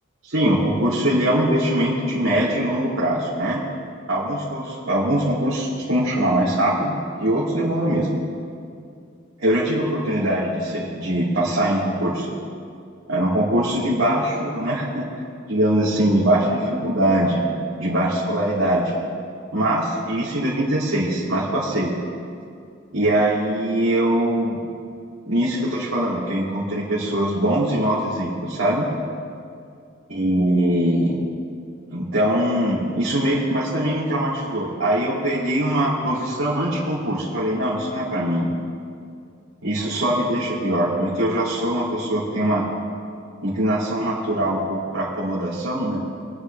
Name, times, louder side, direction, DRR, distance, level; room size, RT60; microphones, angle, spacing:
voice 1, 0.2-3.6 4.1-8.2 9.4-12.3 13.1-15.0 15.5-17.4 17.8-18.9 19.5-21.9 22.9-24.6 25.2-28.9 30.1-31.2 31.9-38.5 39.6-42.6 43.4-46.0, right 1 dB, 80° right, -10 dB, 3.2 m, -22 dB
26.0 x 9.6 x 3.5 m, 2.4 s
head